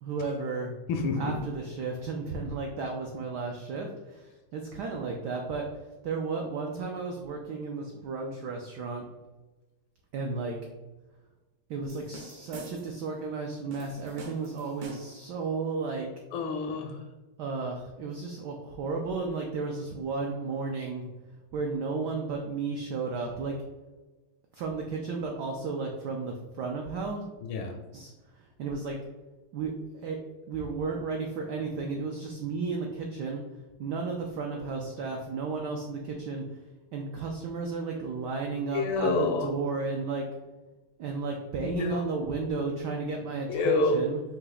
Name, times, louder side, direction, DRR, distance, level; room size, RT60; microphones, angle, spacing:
voice 1, 0.0-0.7 1.2-5.7 6.0-9.0 10.1-10.6 11.7-16.1 17.4-21.1 21.5-23.6 24.5-27.2 27.9-28.1 28.6-29.0 29.5-29.7 30.0-30.2 30.5-33.4 33.8-36.4 36.9-40.3 41.0-44.2, right 4 dB, 85° right, 1 dB, 0.9 m, -33 dB
voice 2, 0.9-1.3 16.3-17.0 27.4-27.8 38.7-39.6 41.6-42.1 43.5-44.0, left 3 dB, 80° left, 4 dB, 1.3 m, -28 dB
sound 1, 11.9-13.1 13.7-15.3, right 1 dB, 65° right, 1.2 m, -47 dB
4.2 x 2.8 x 3.9 m, 1.2 s
omnidirectional pair, 2.4 m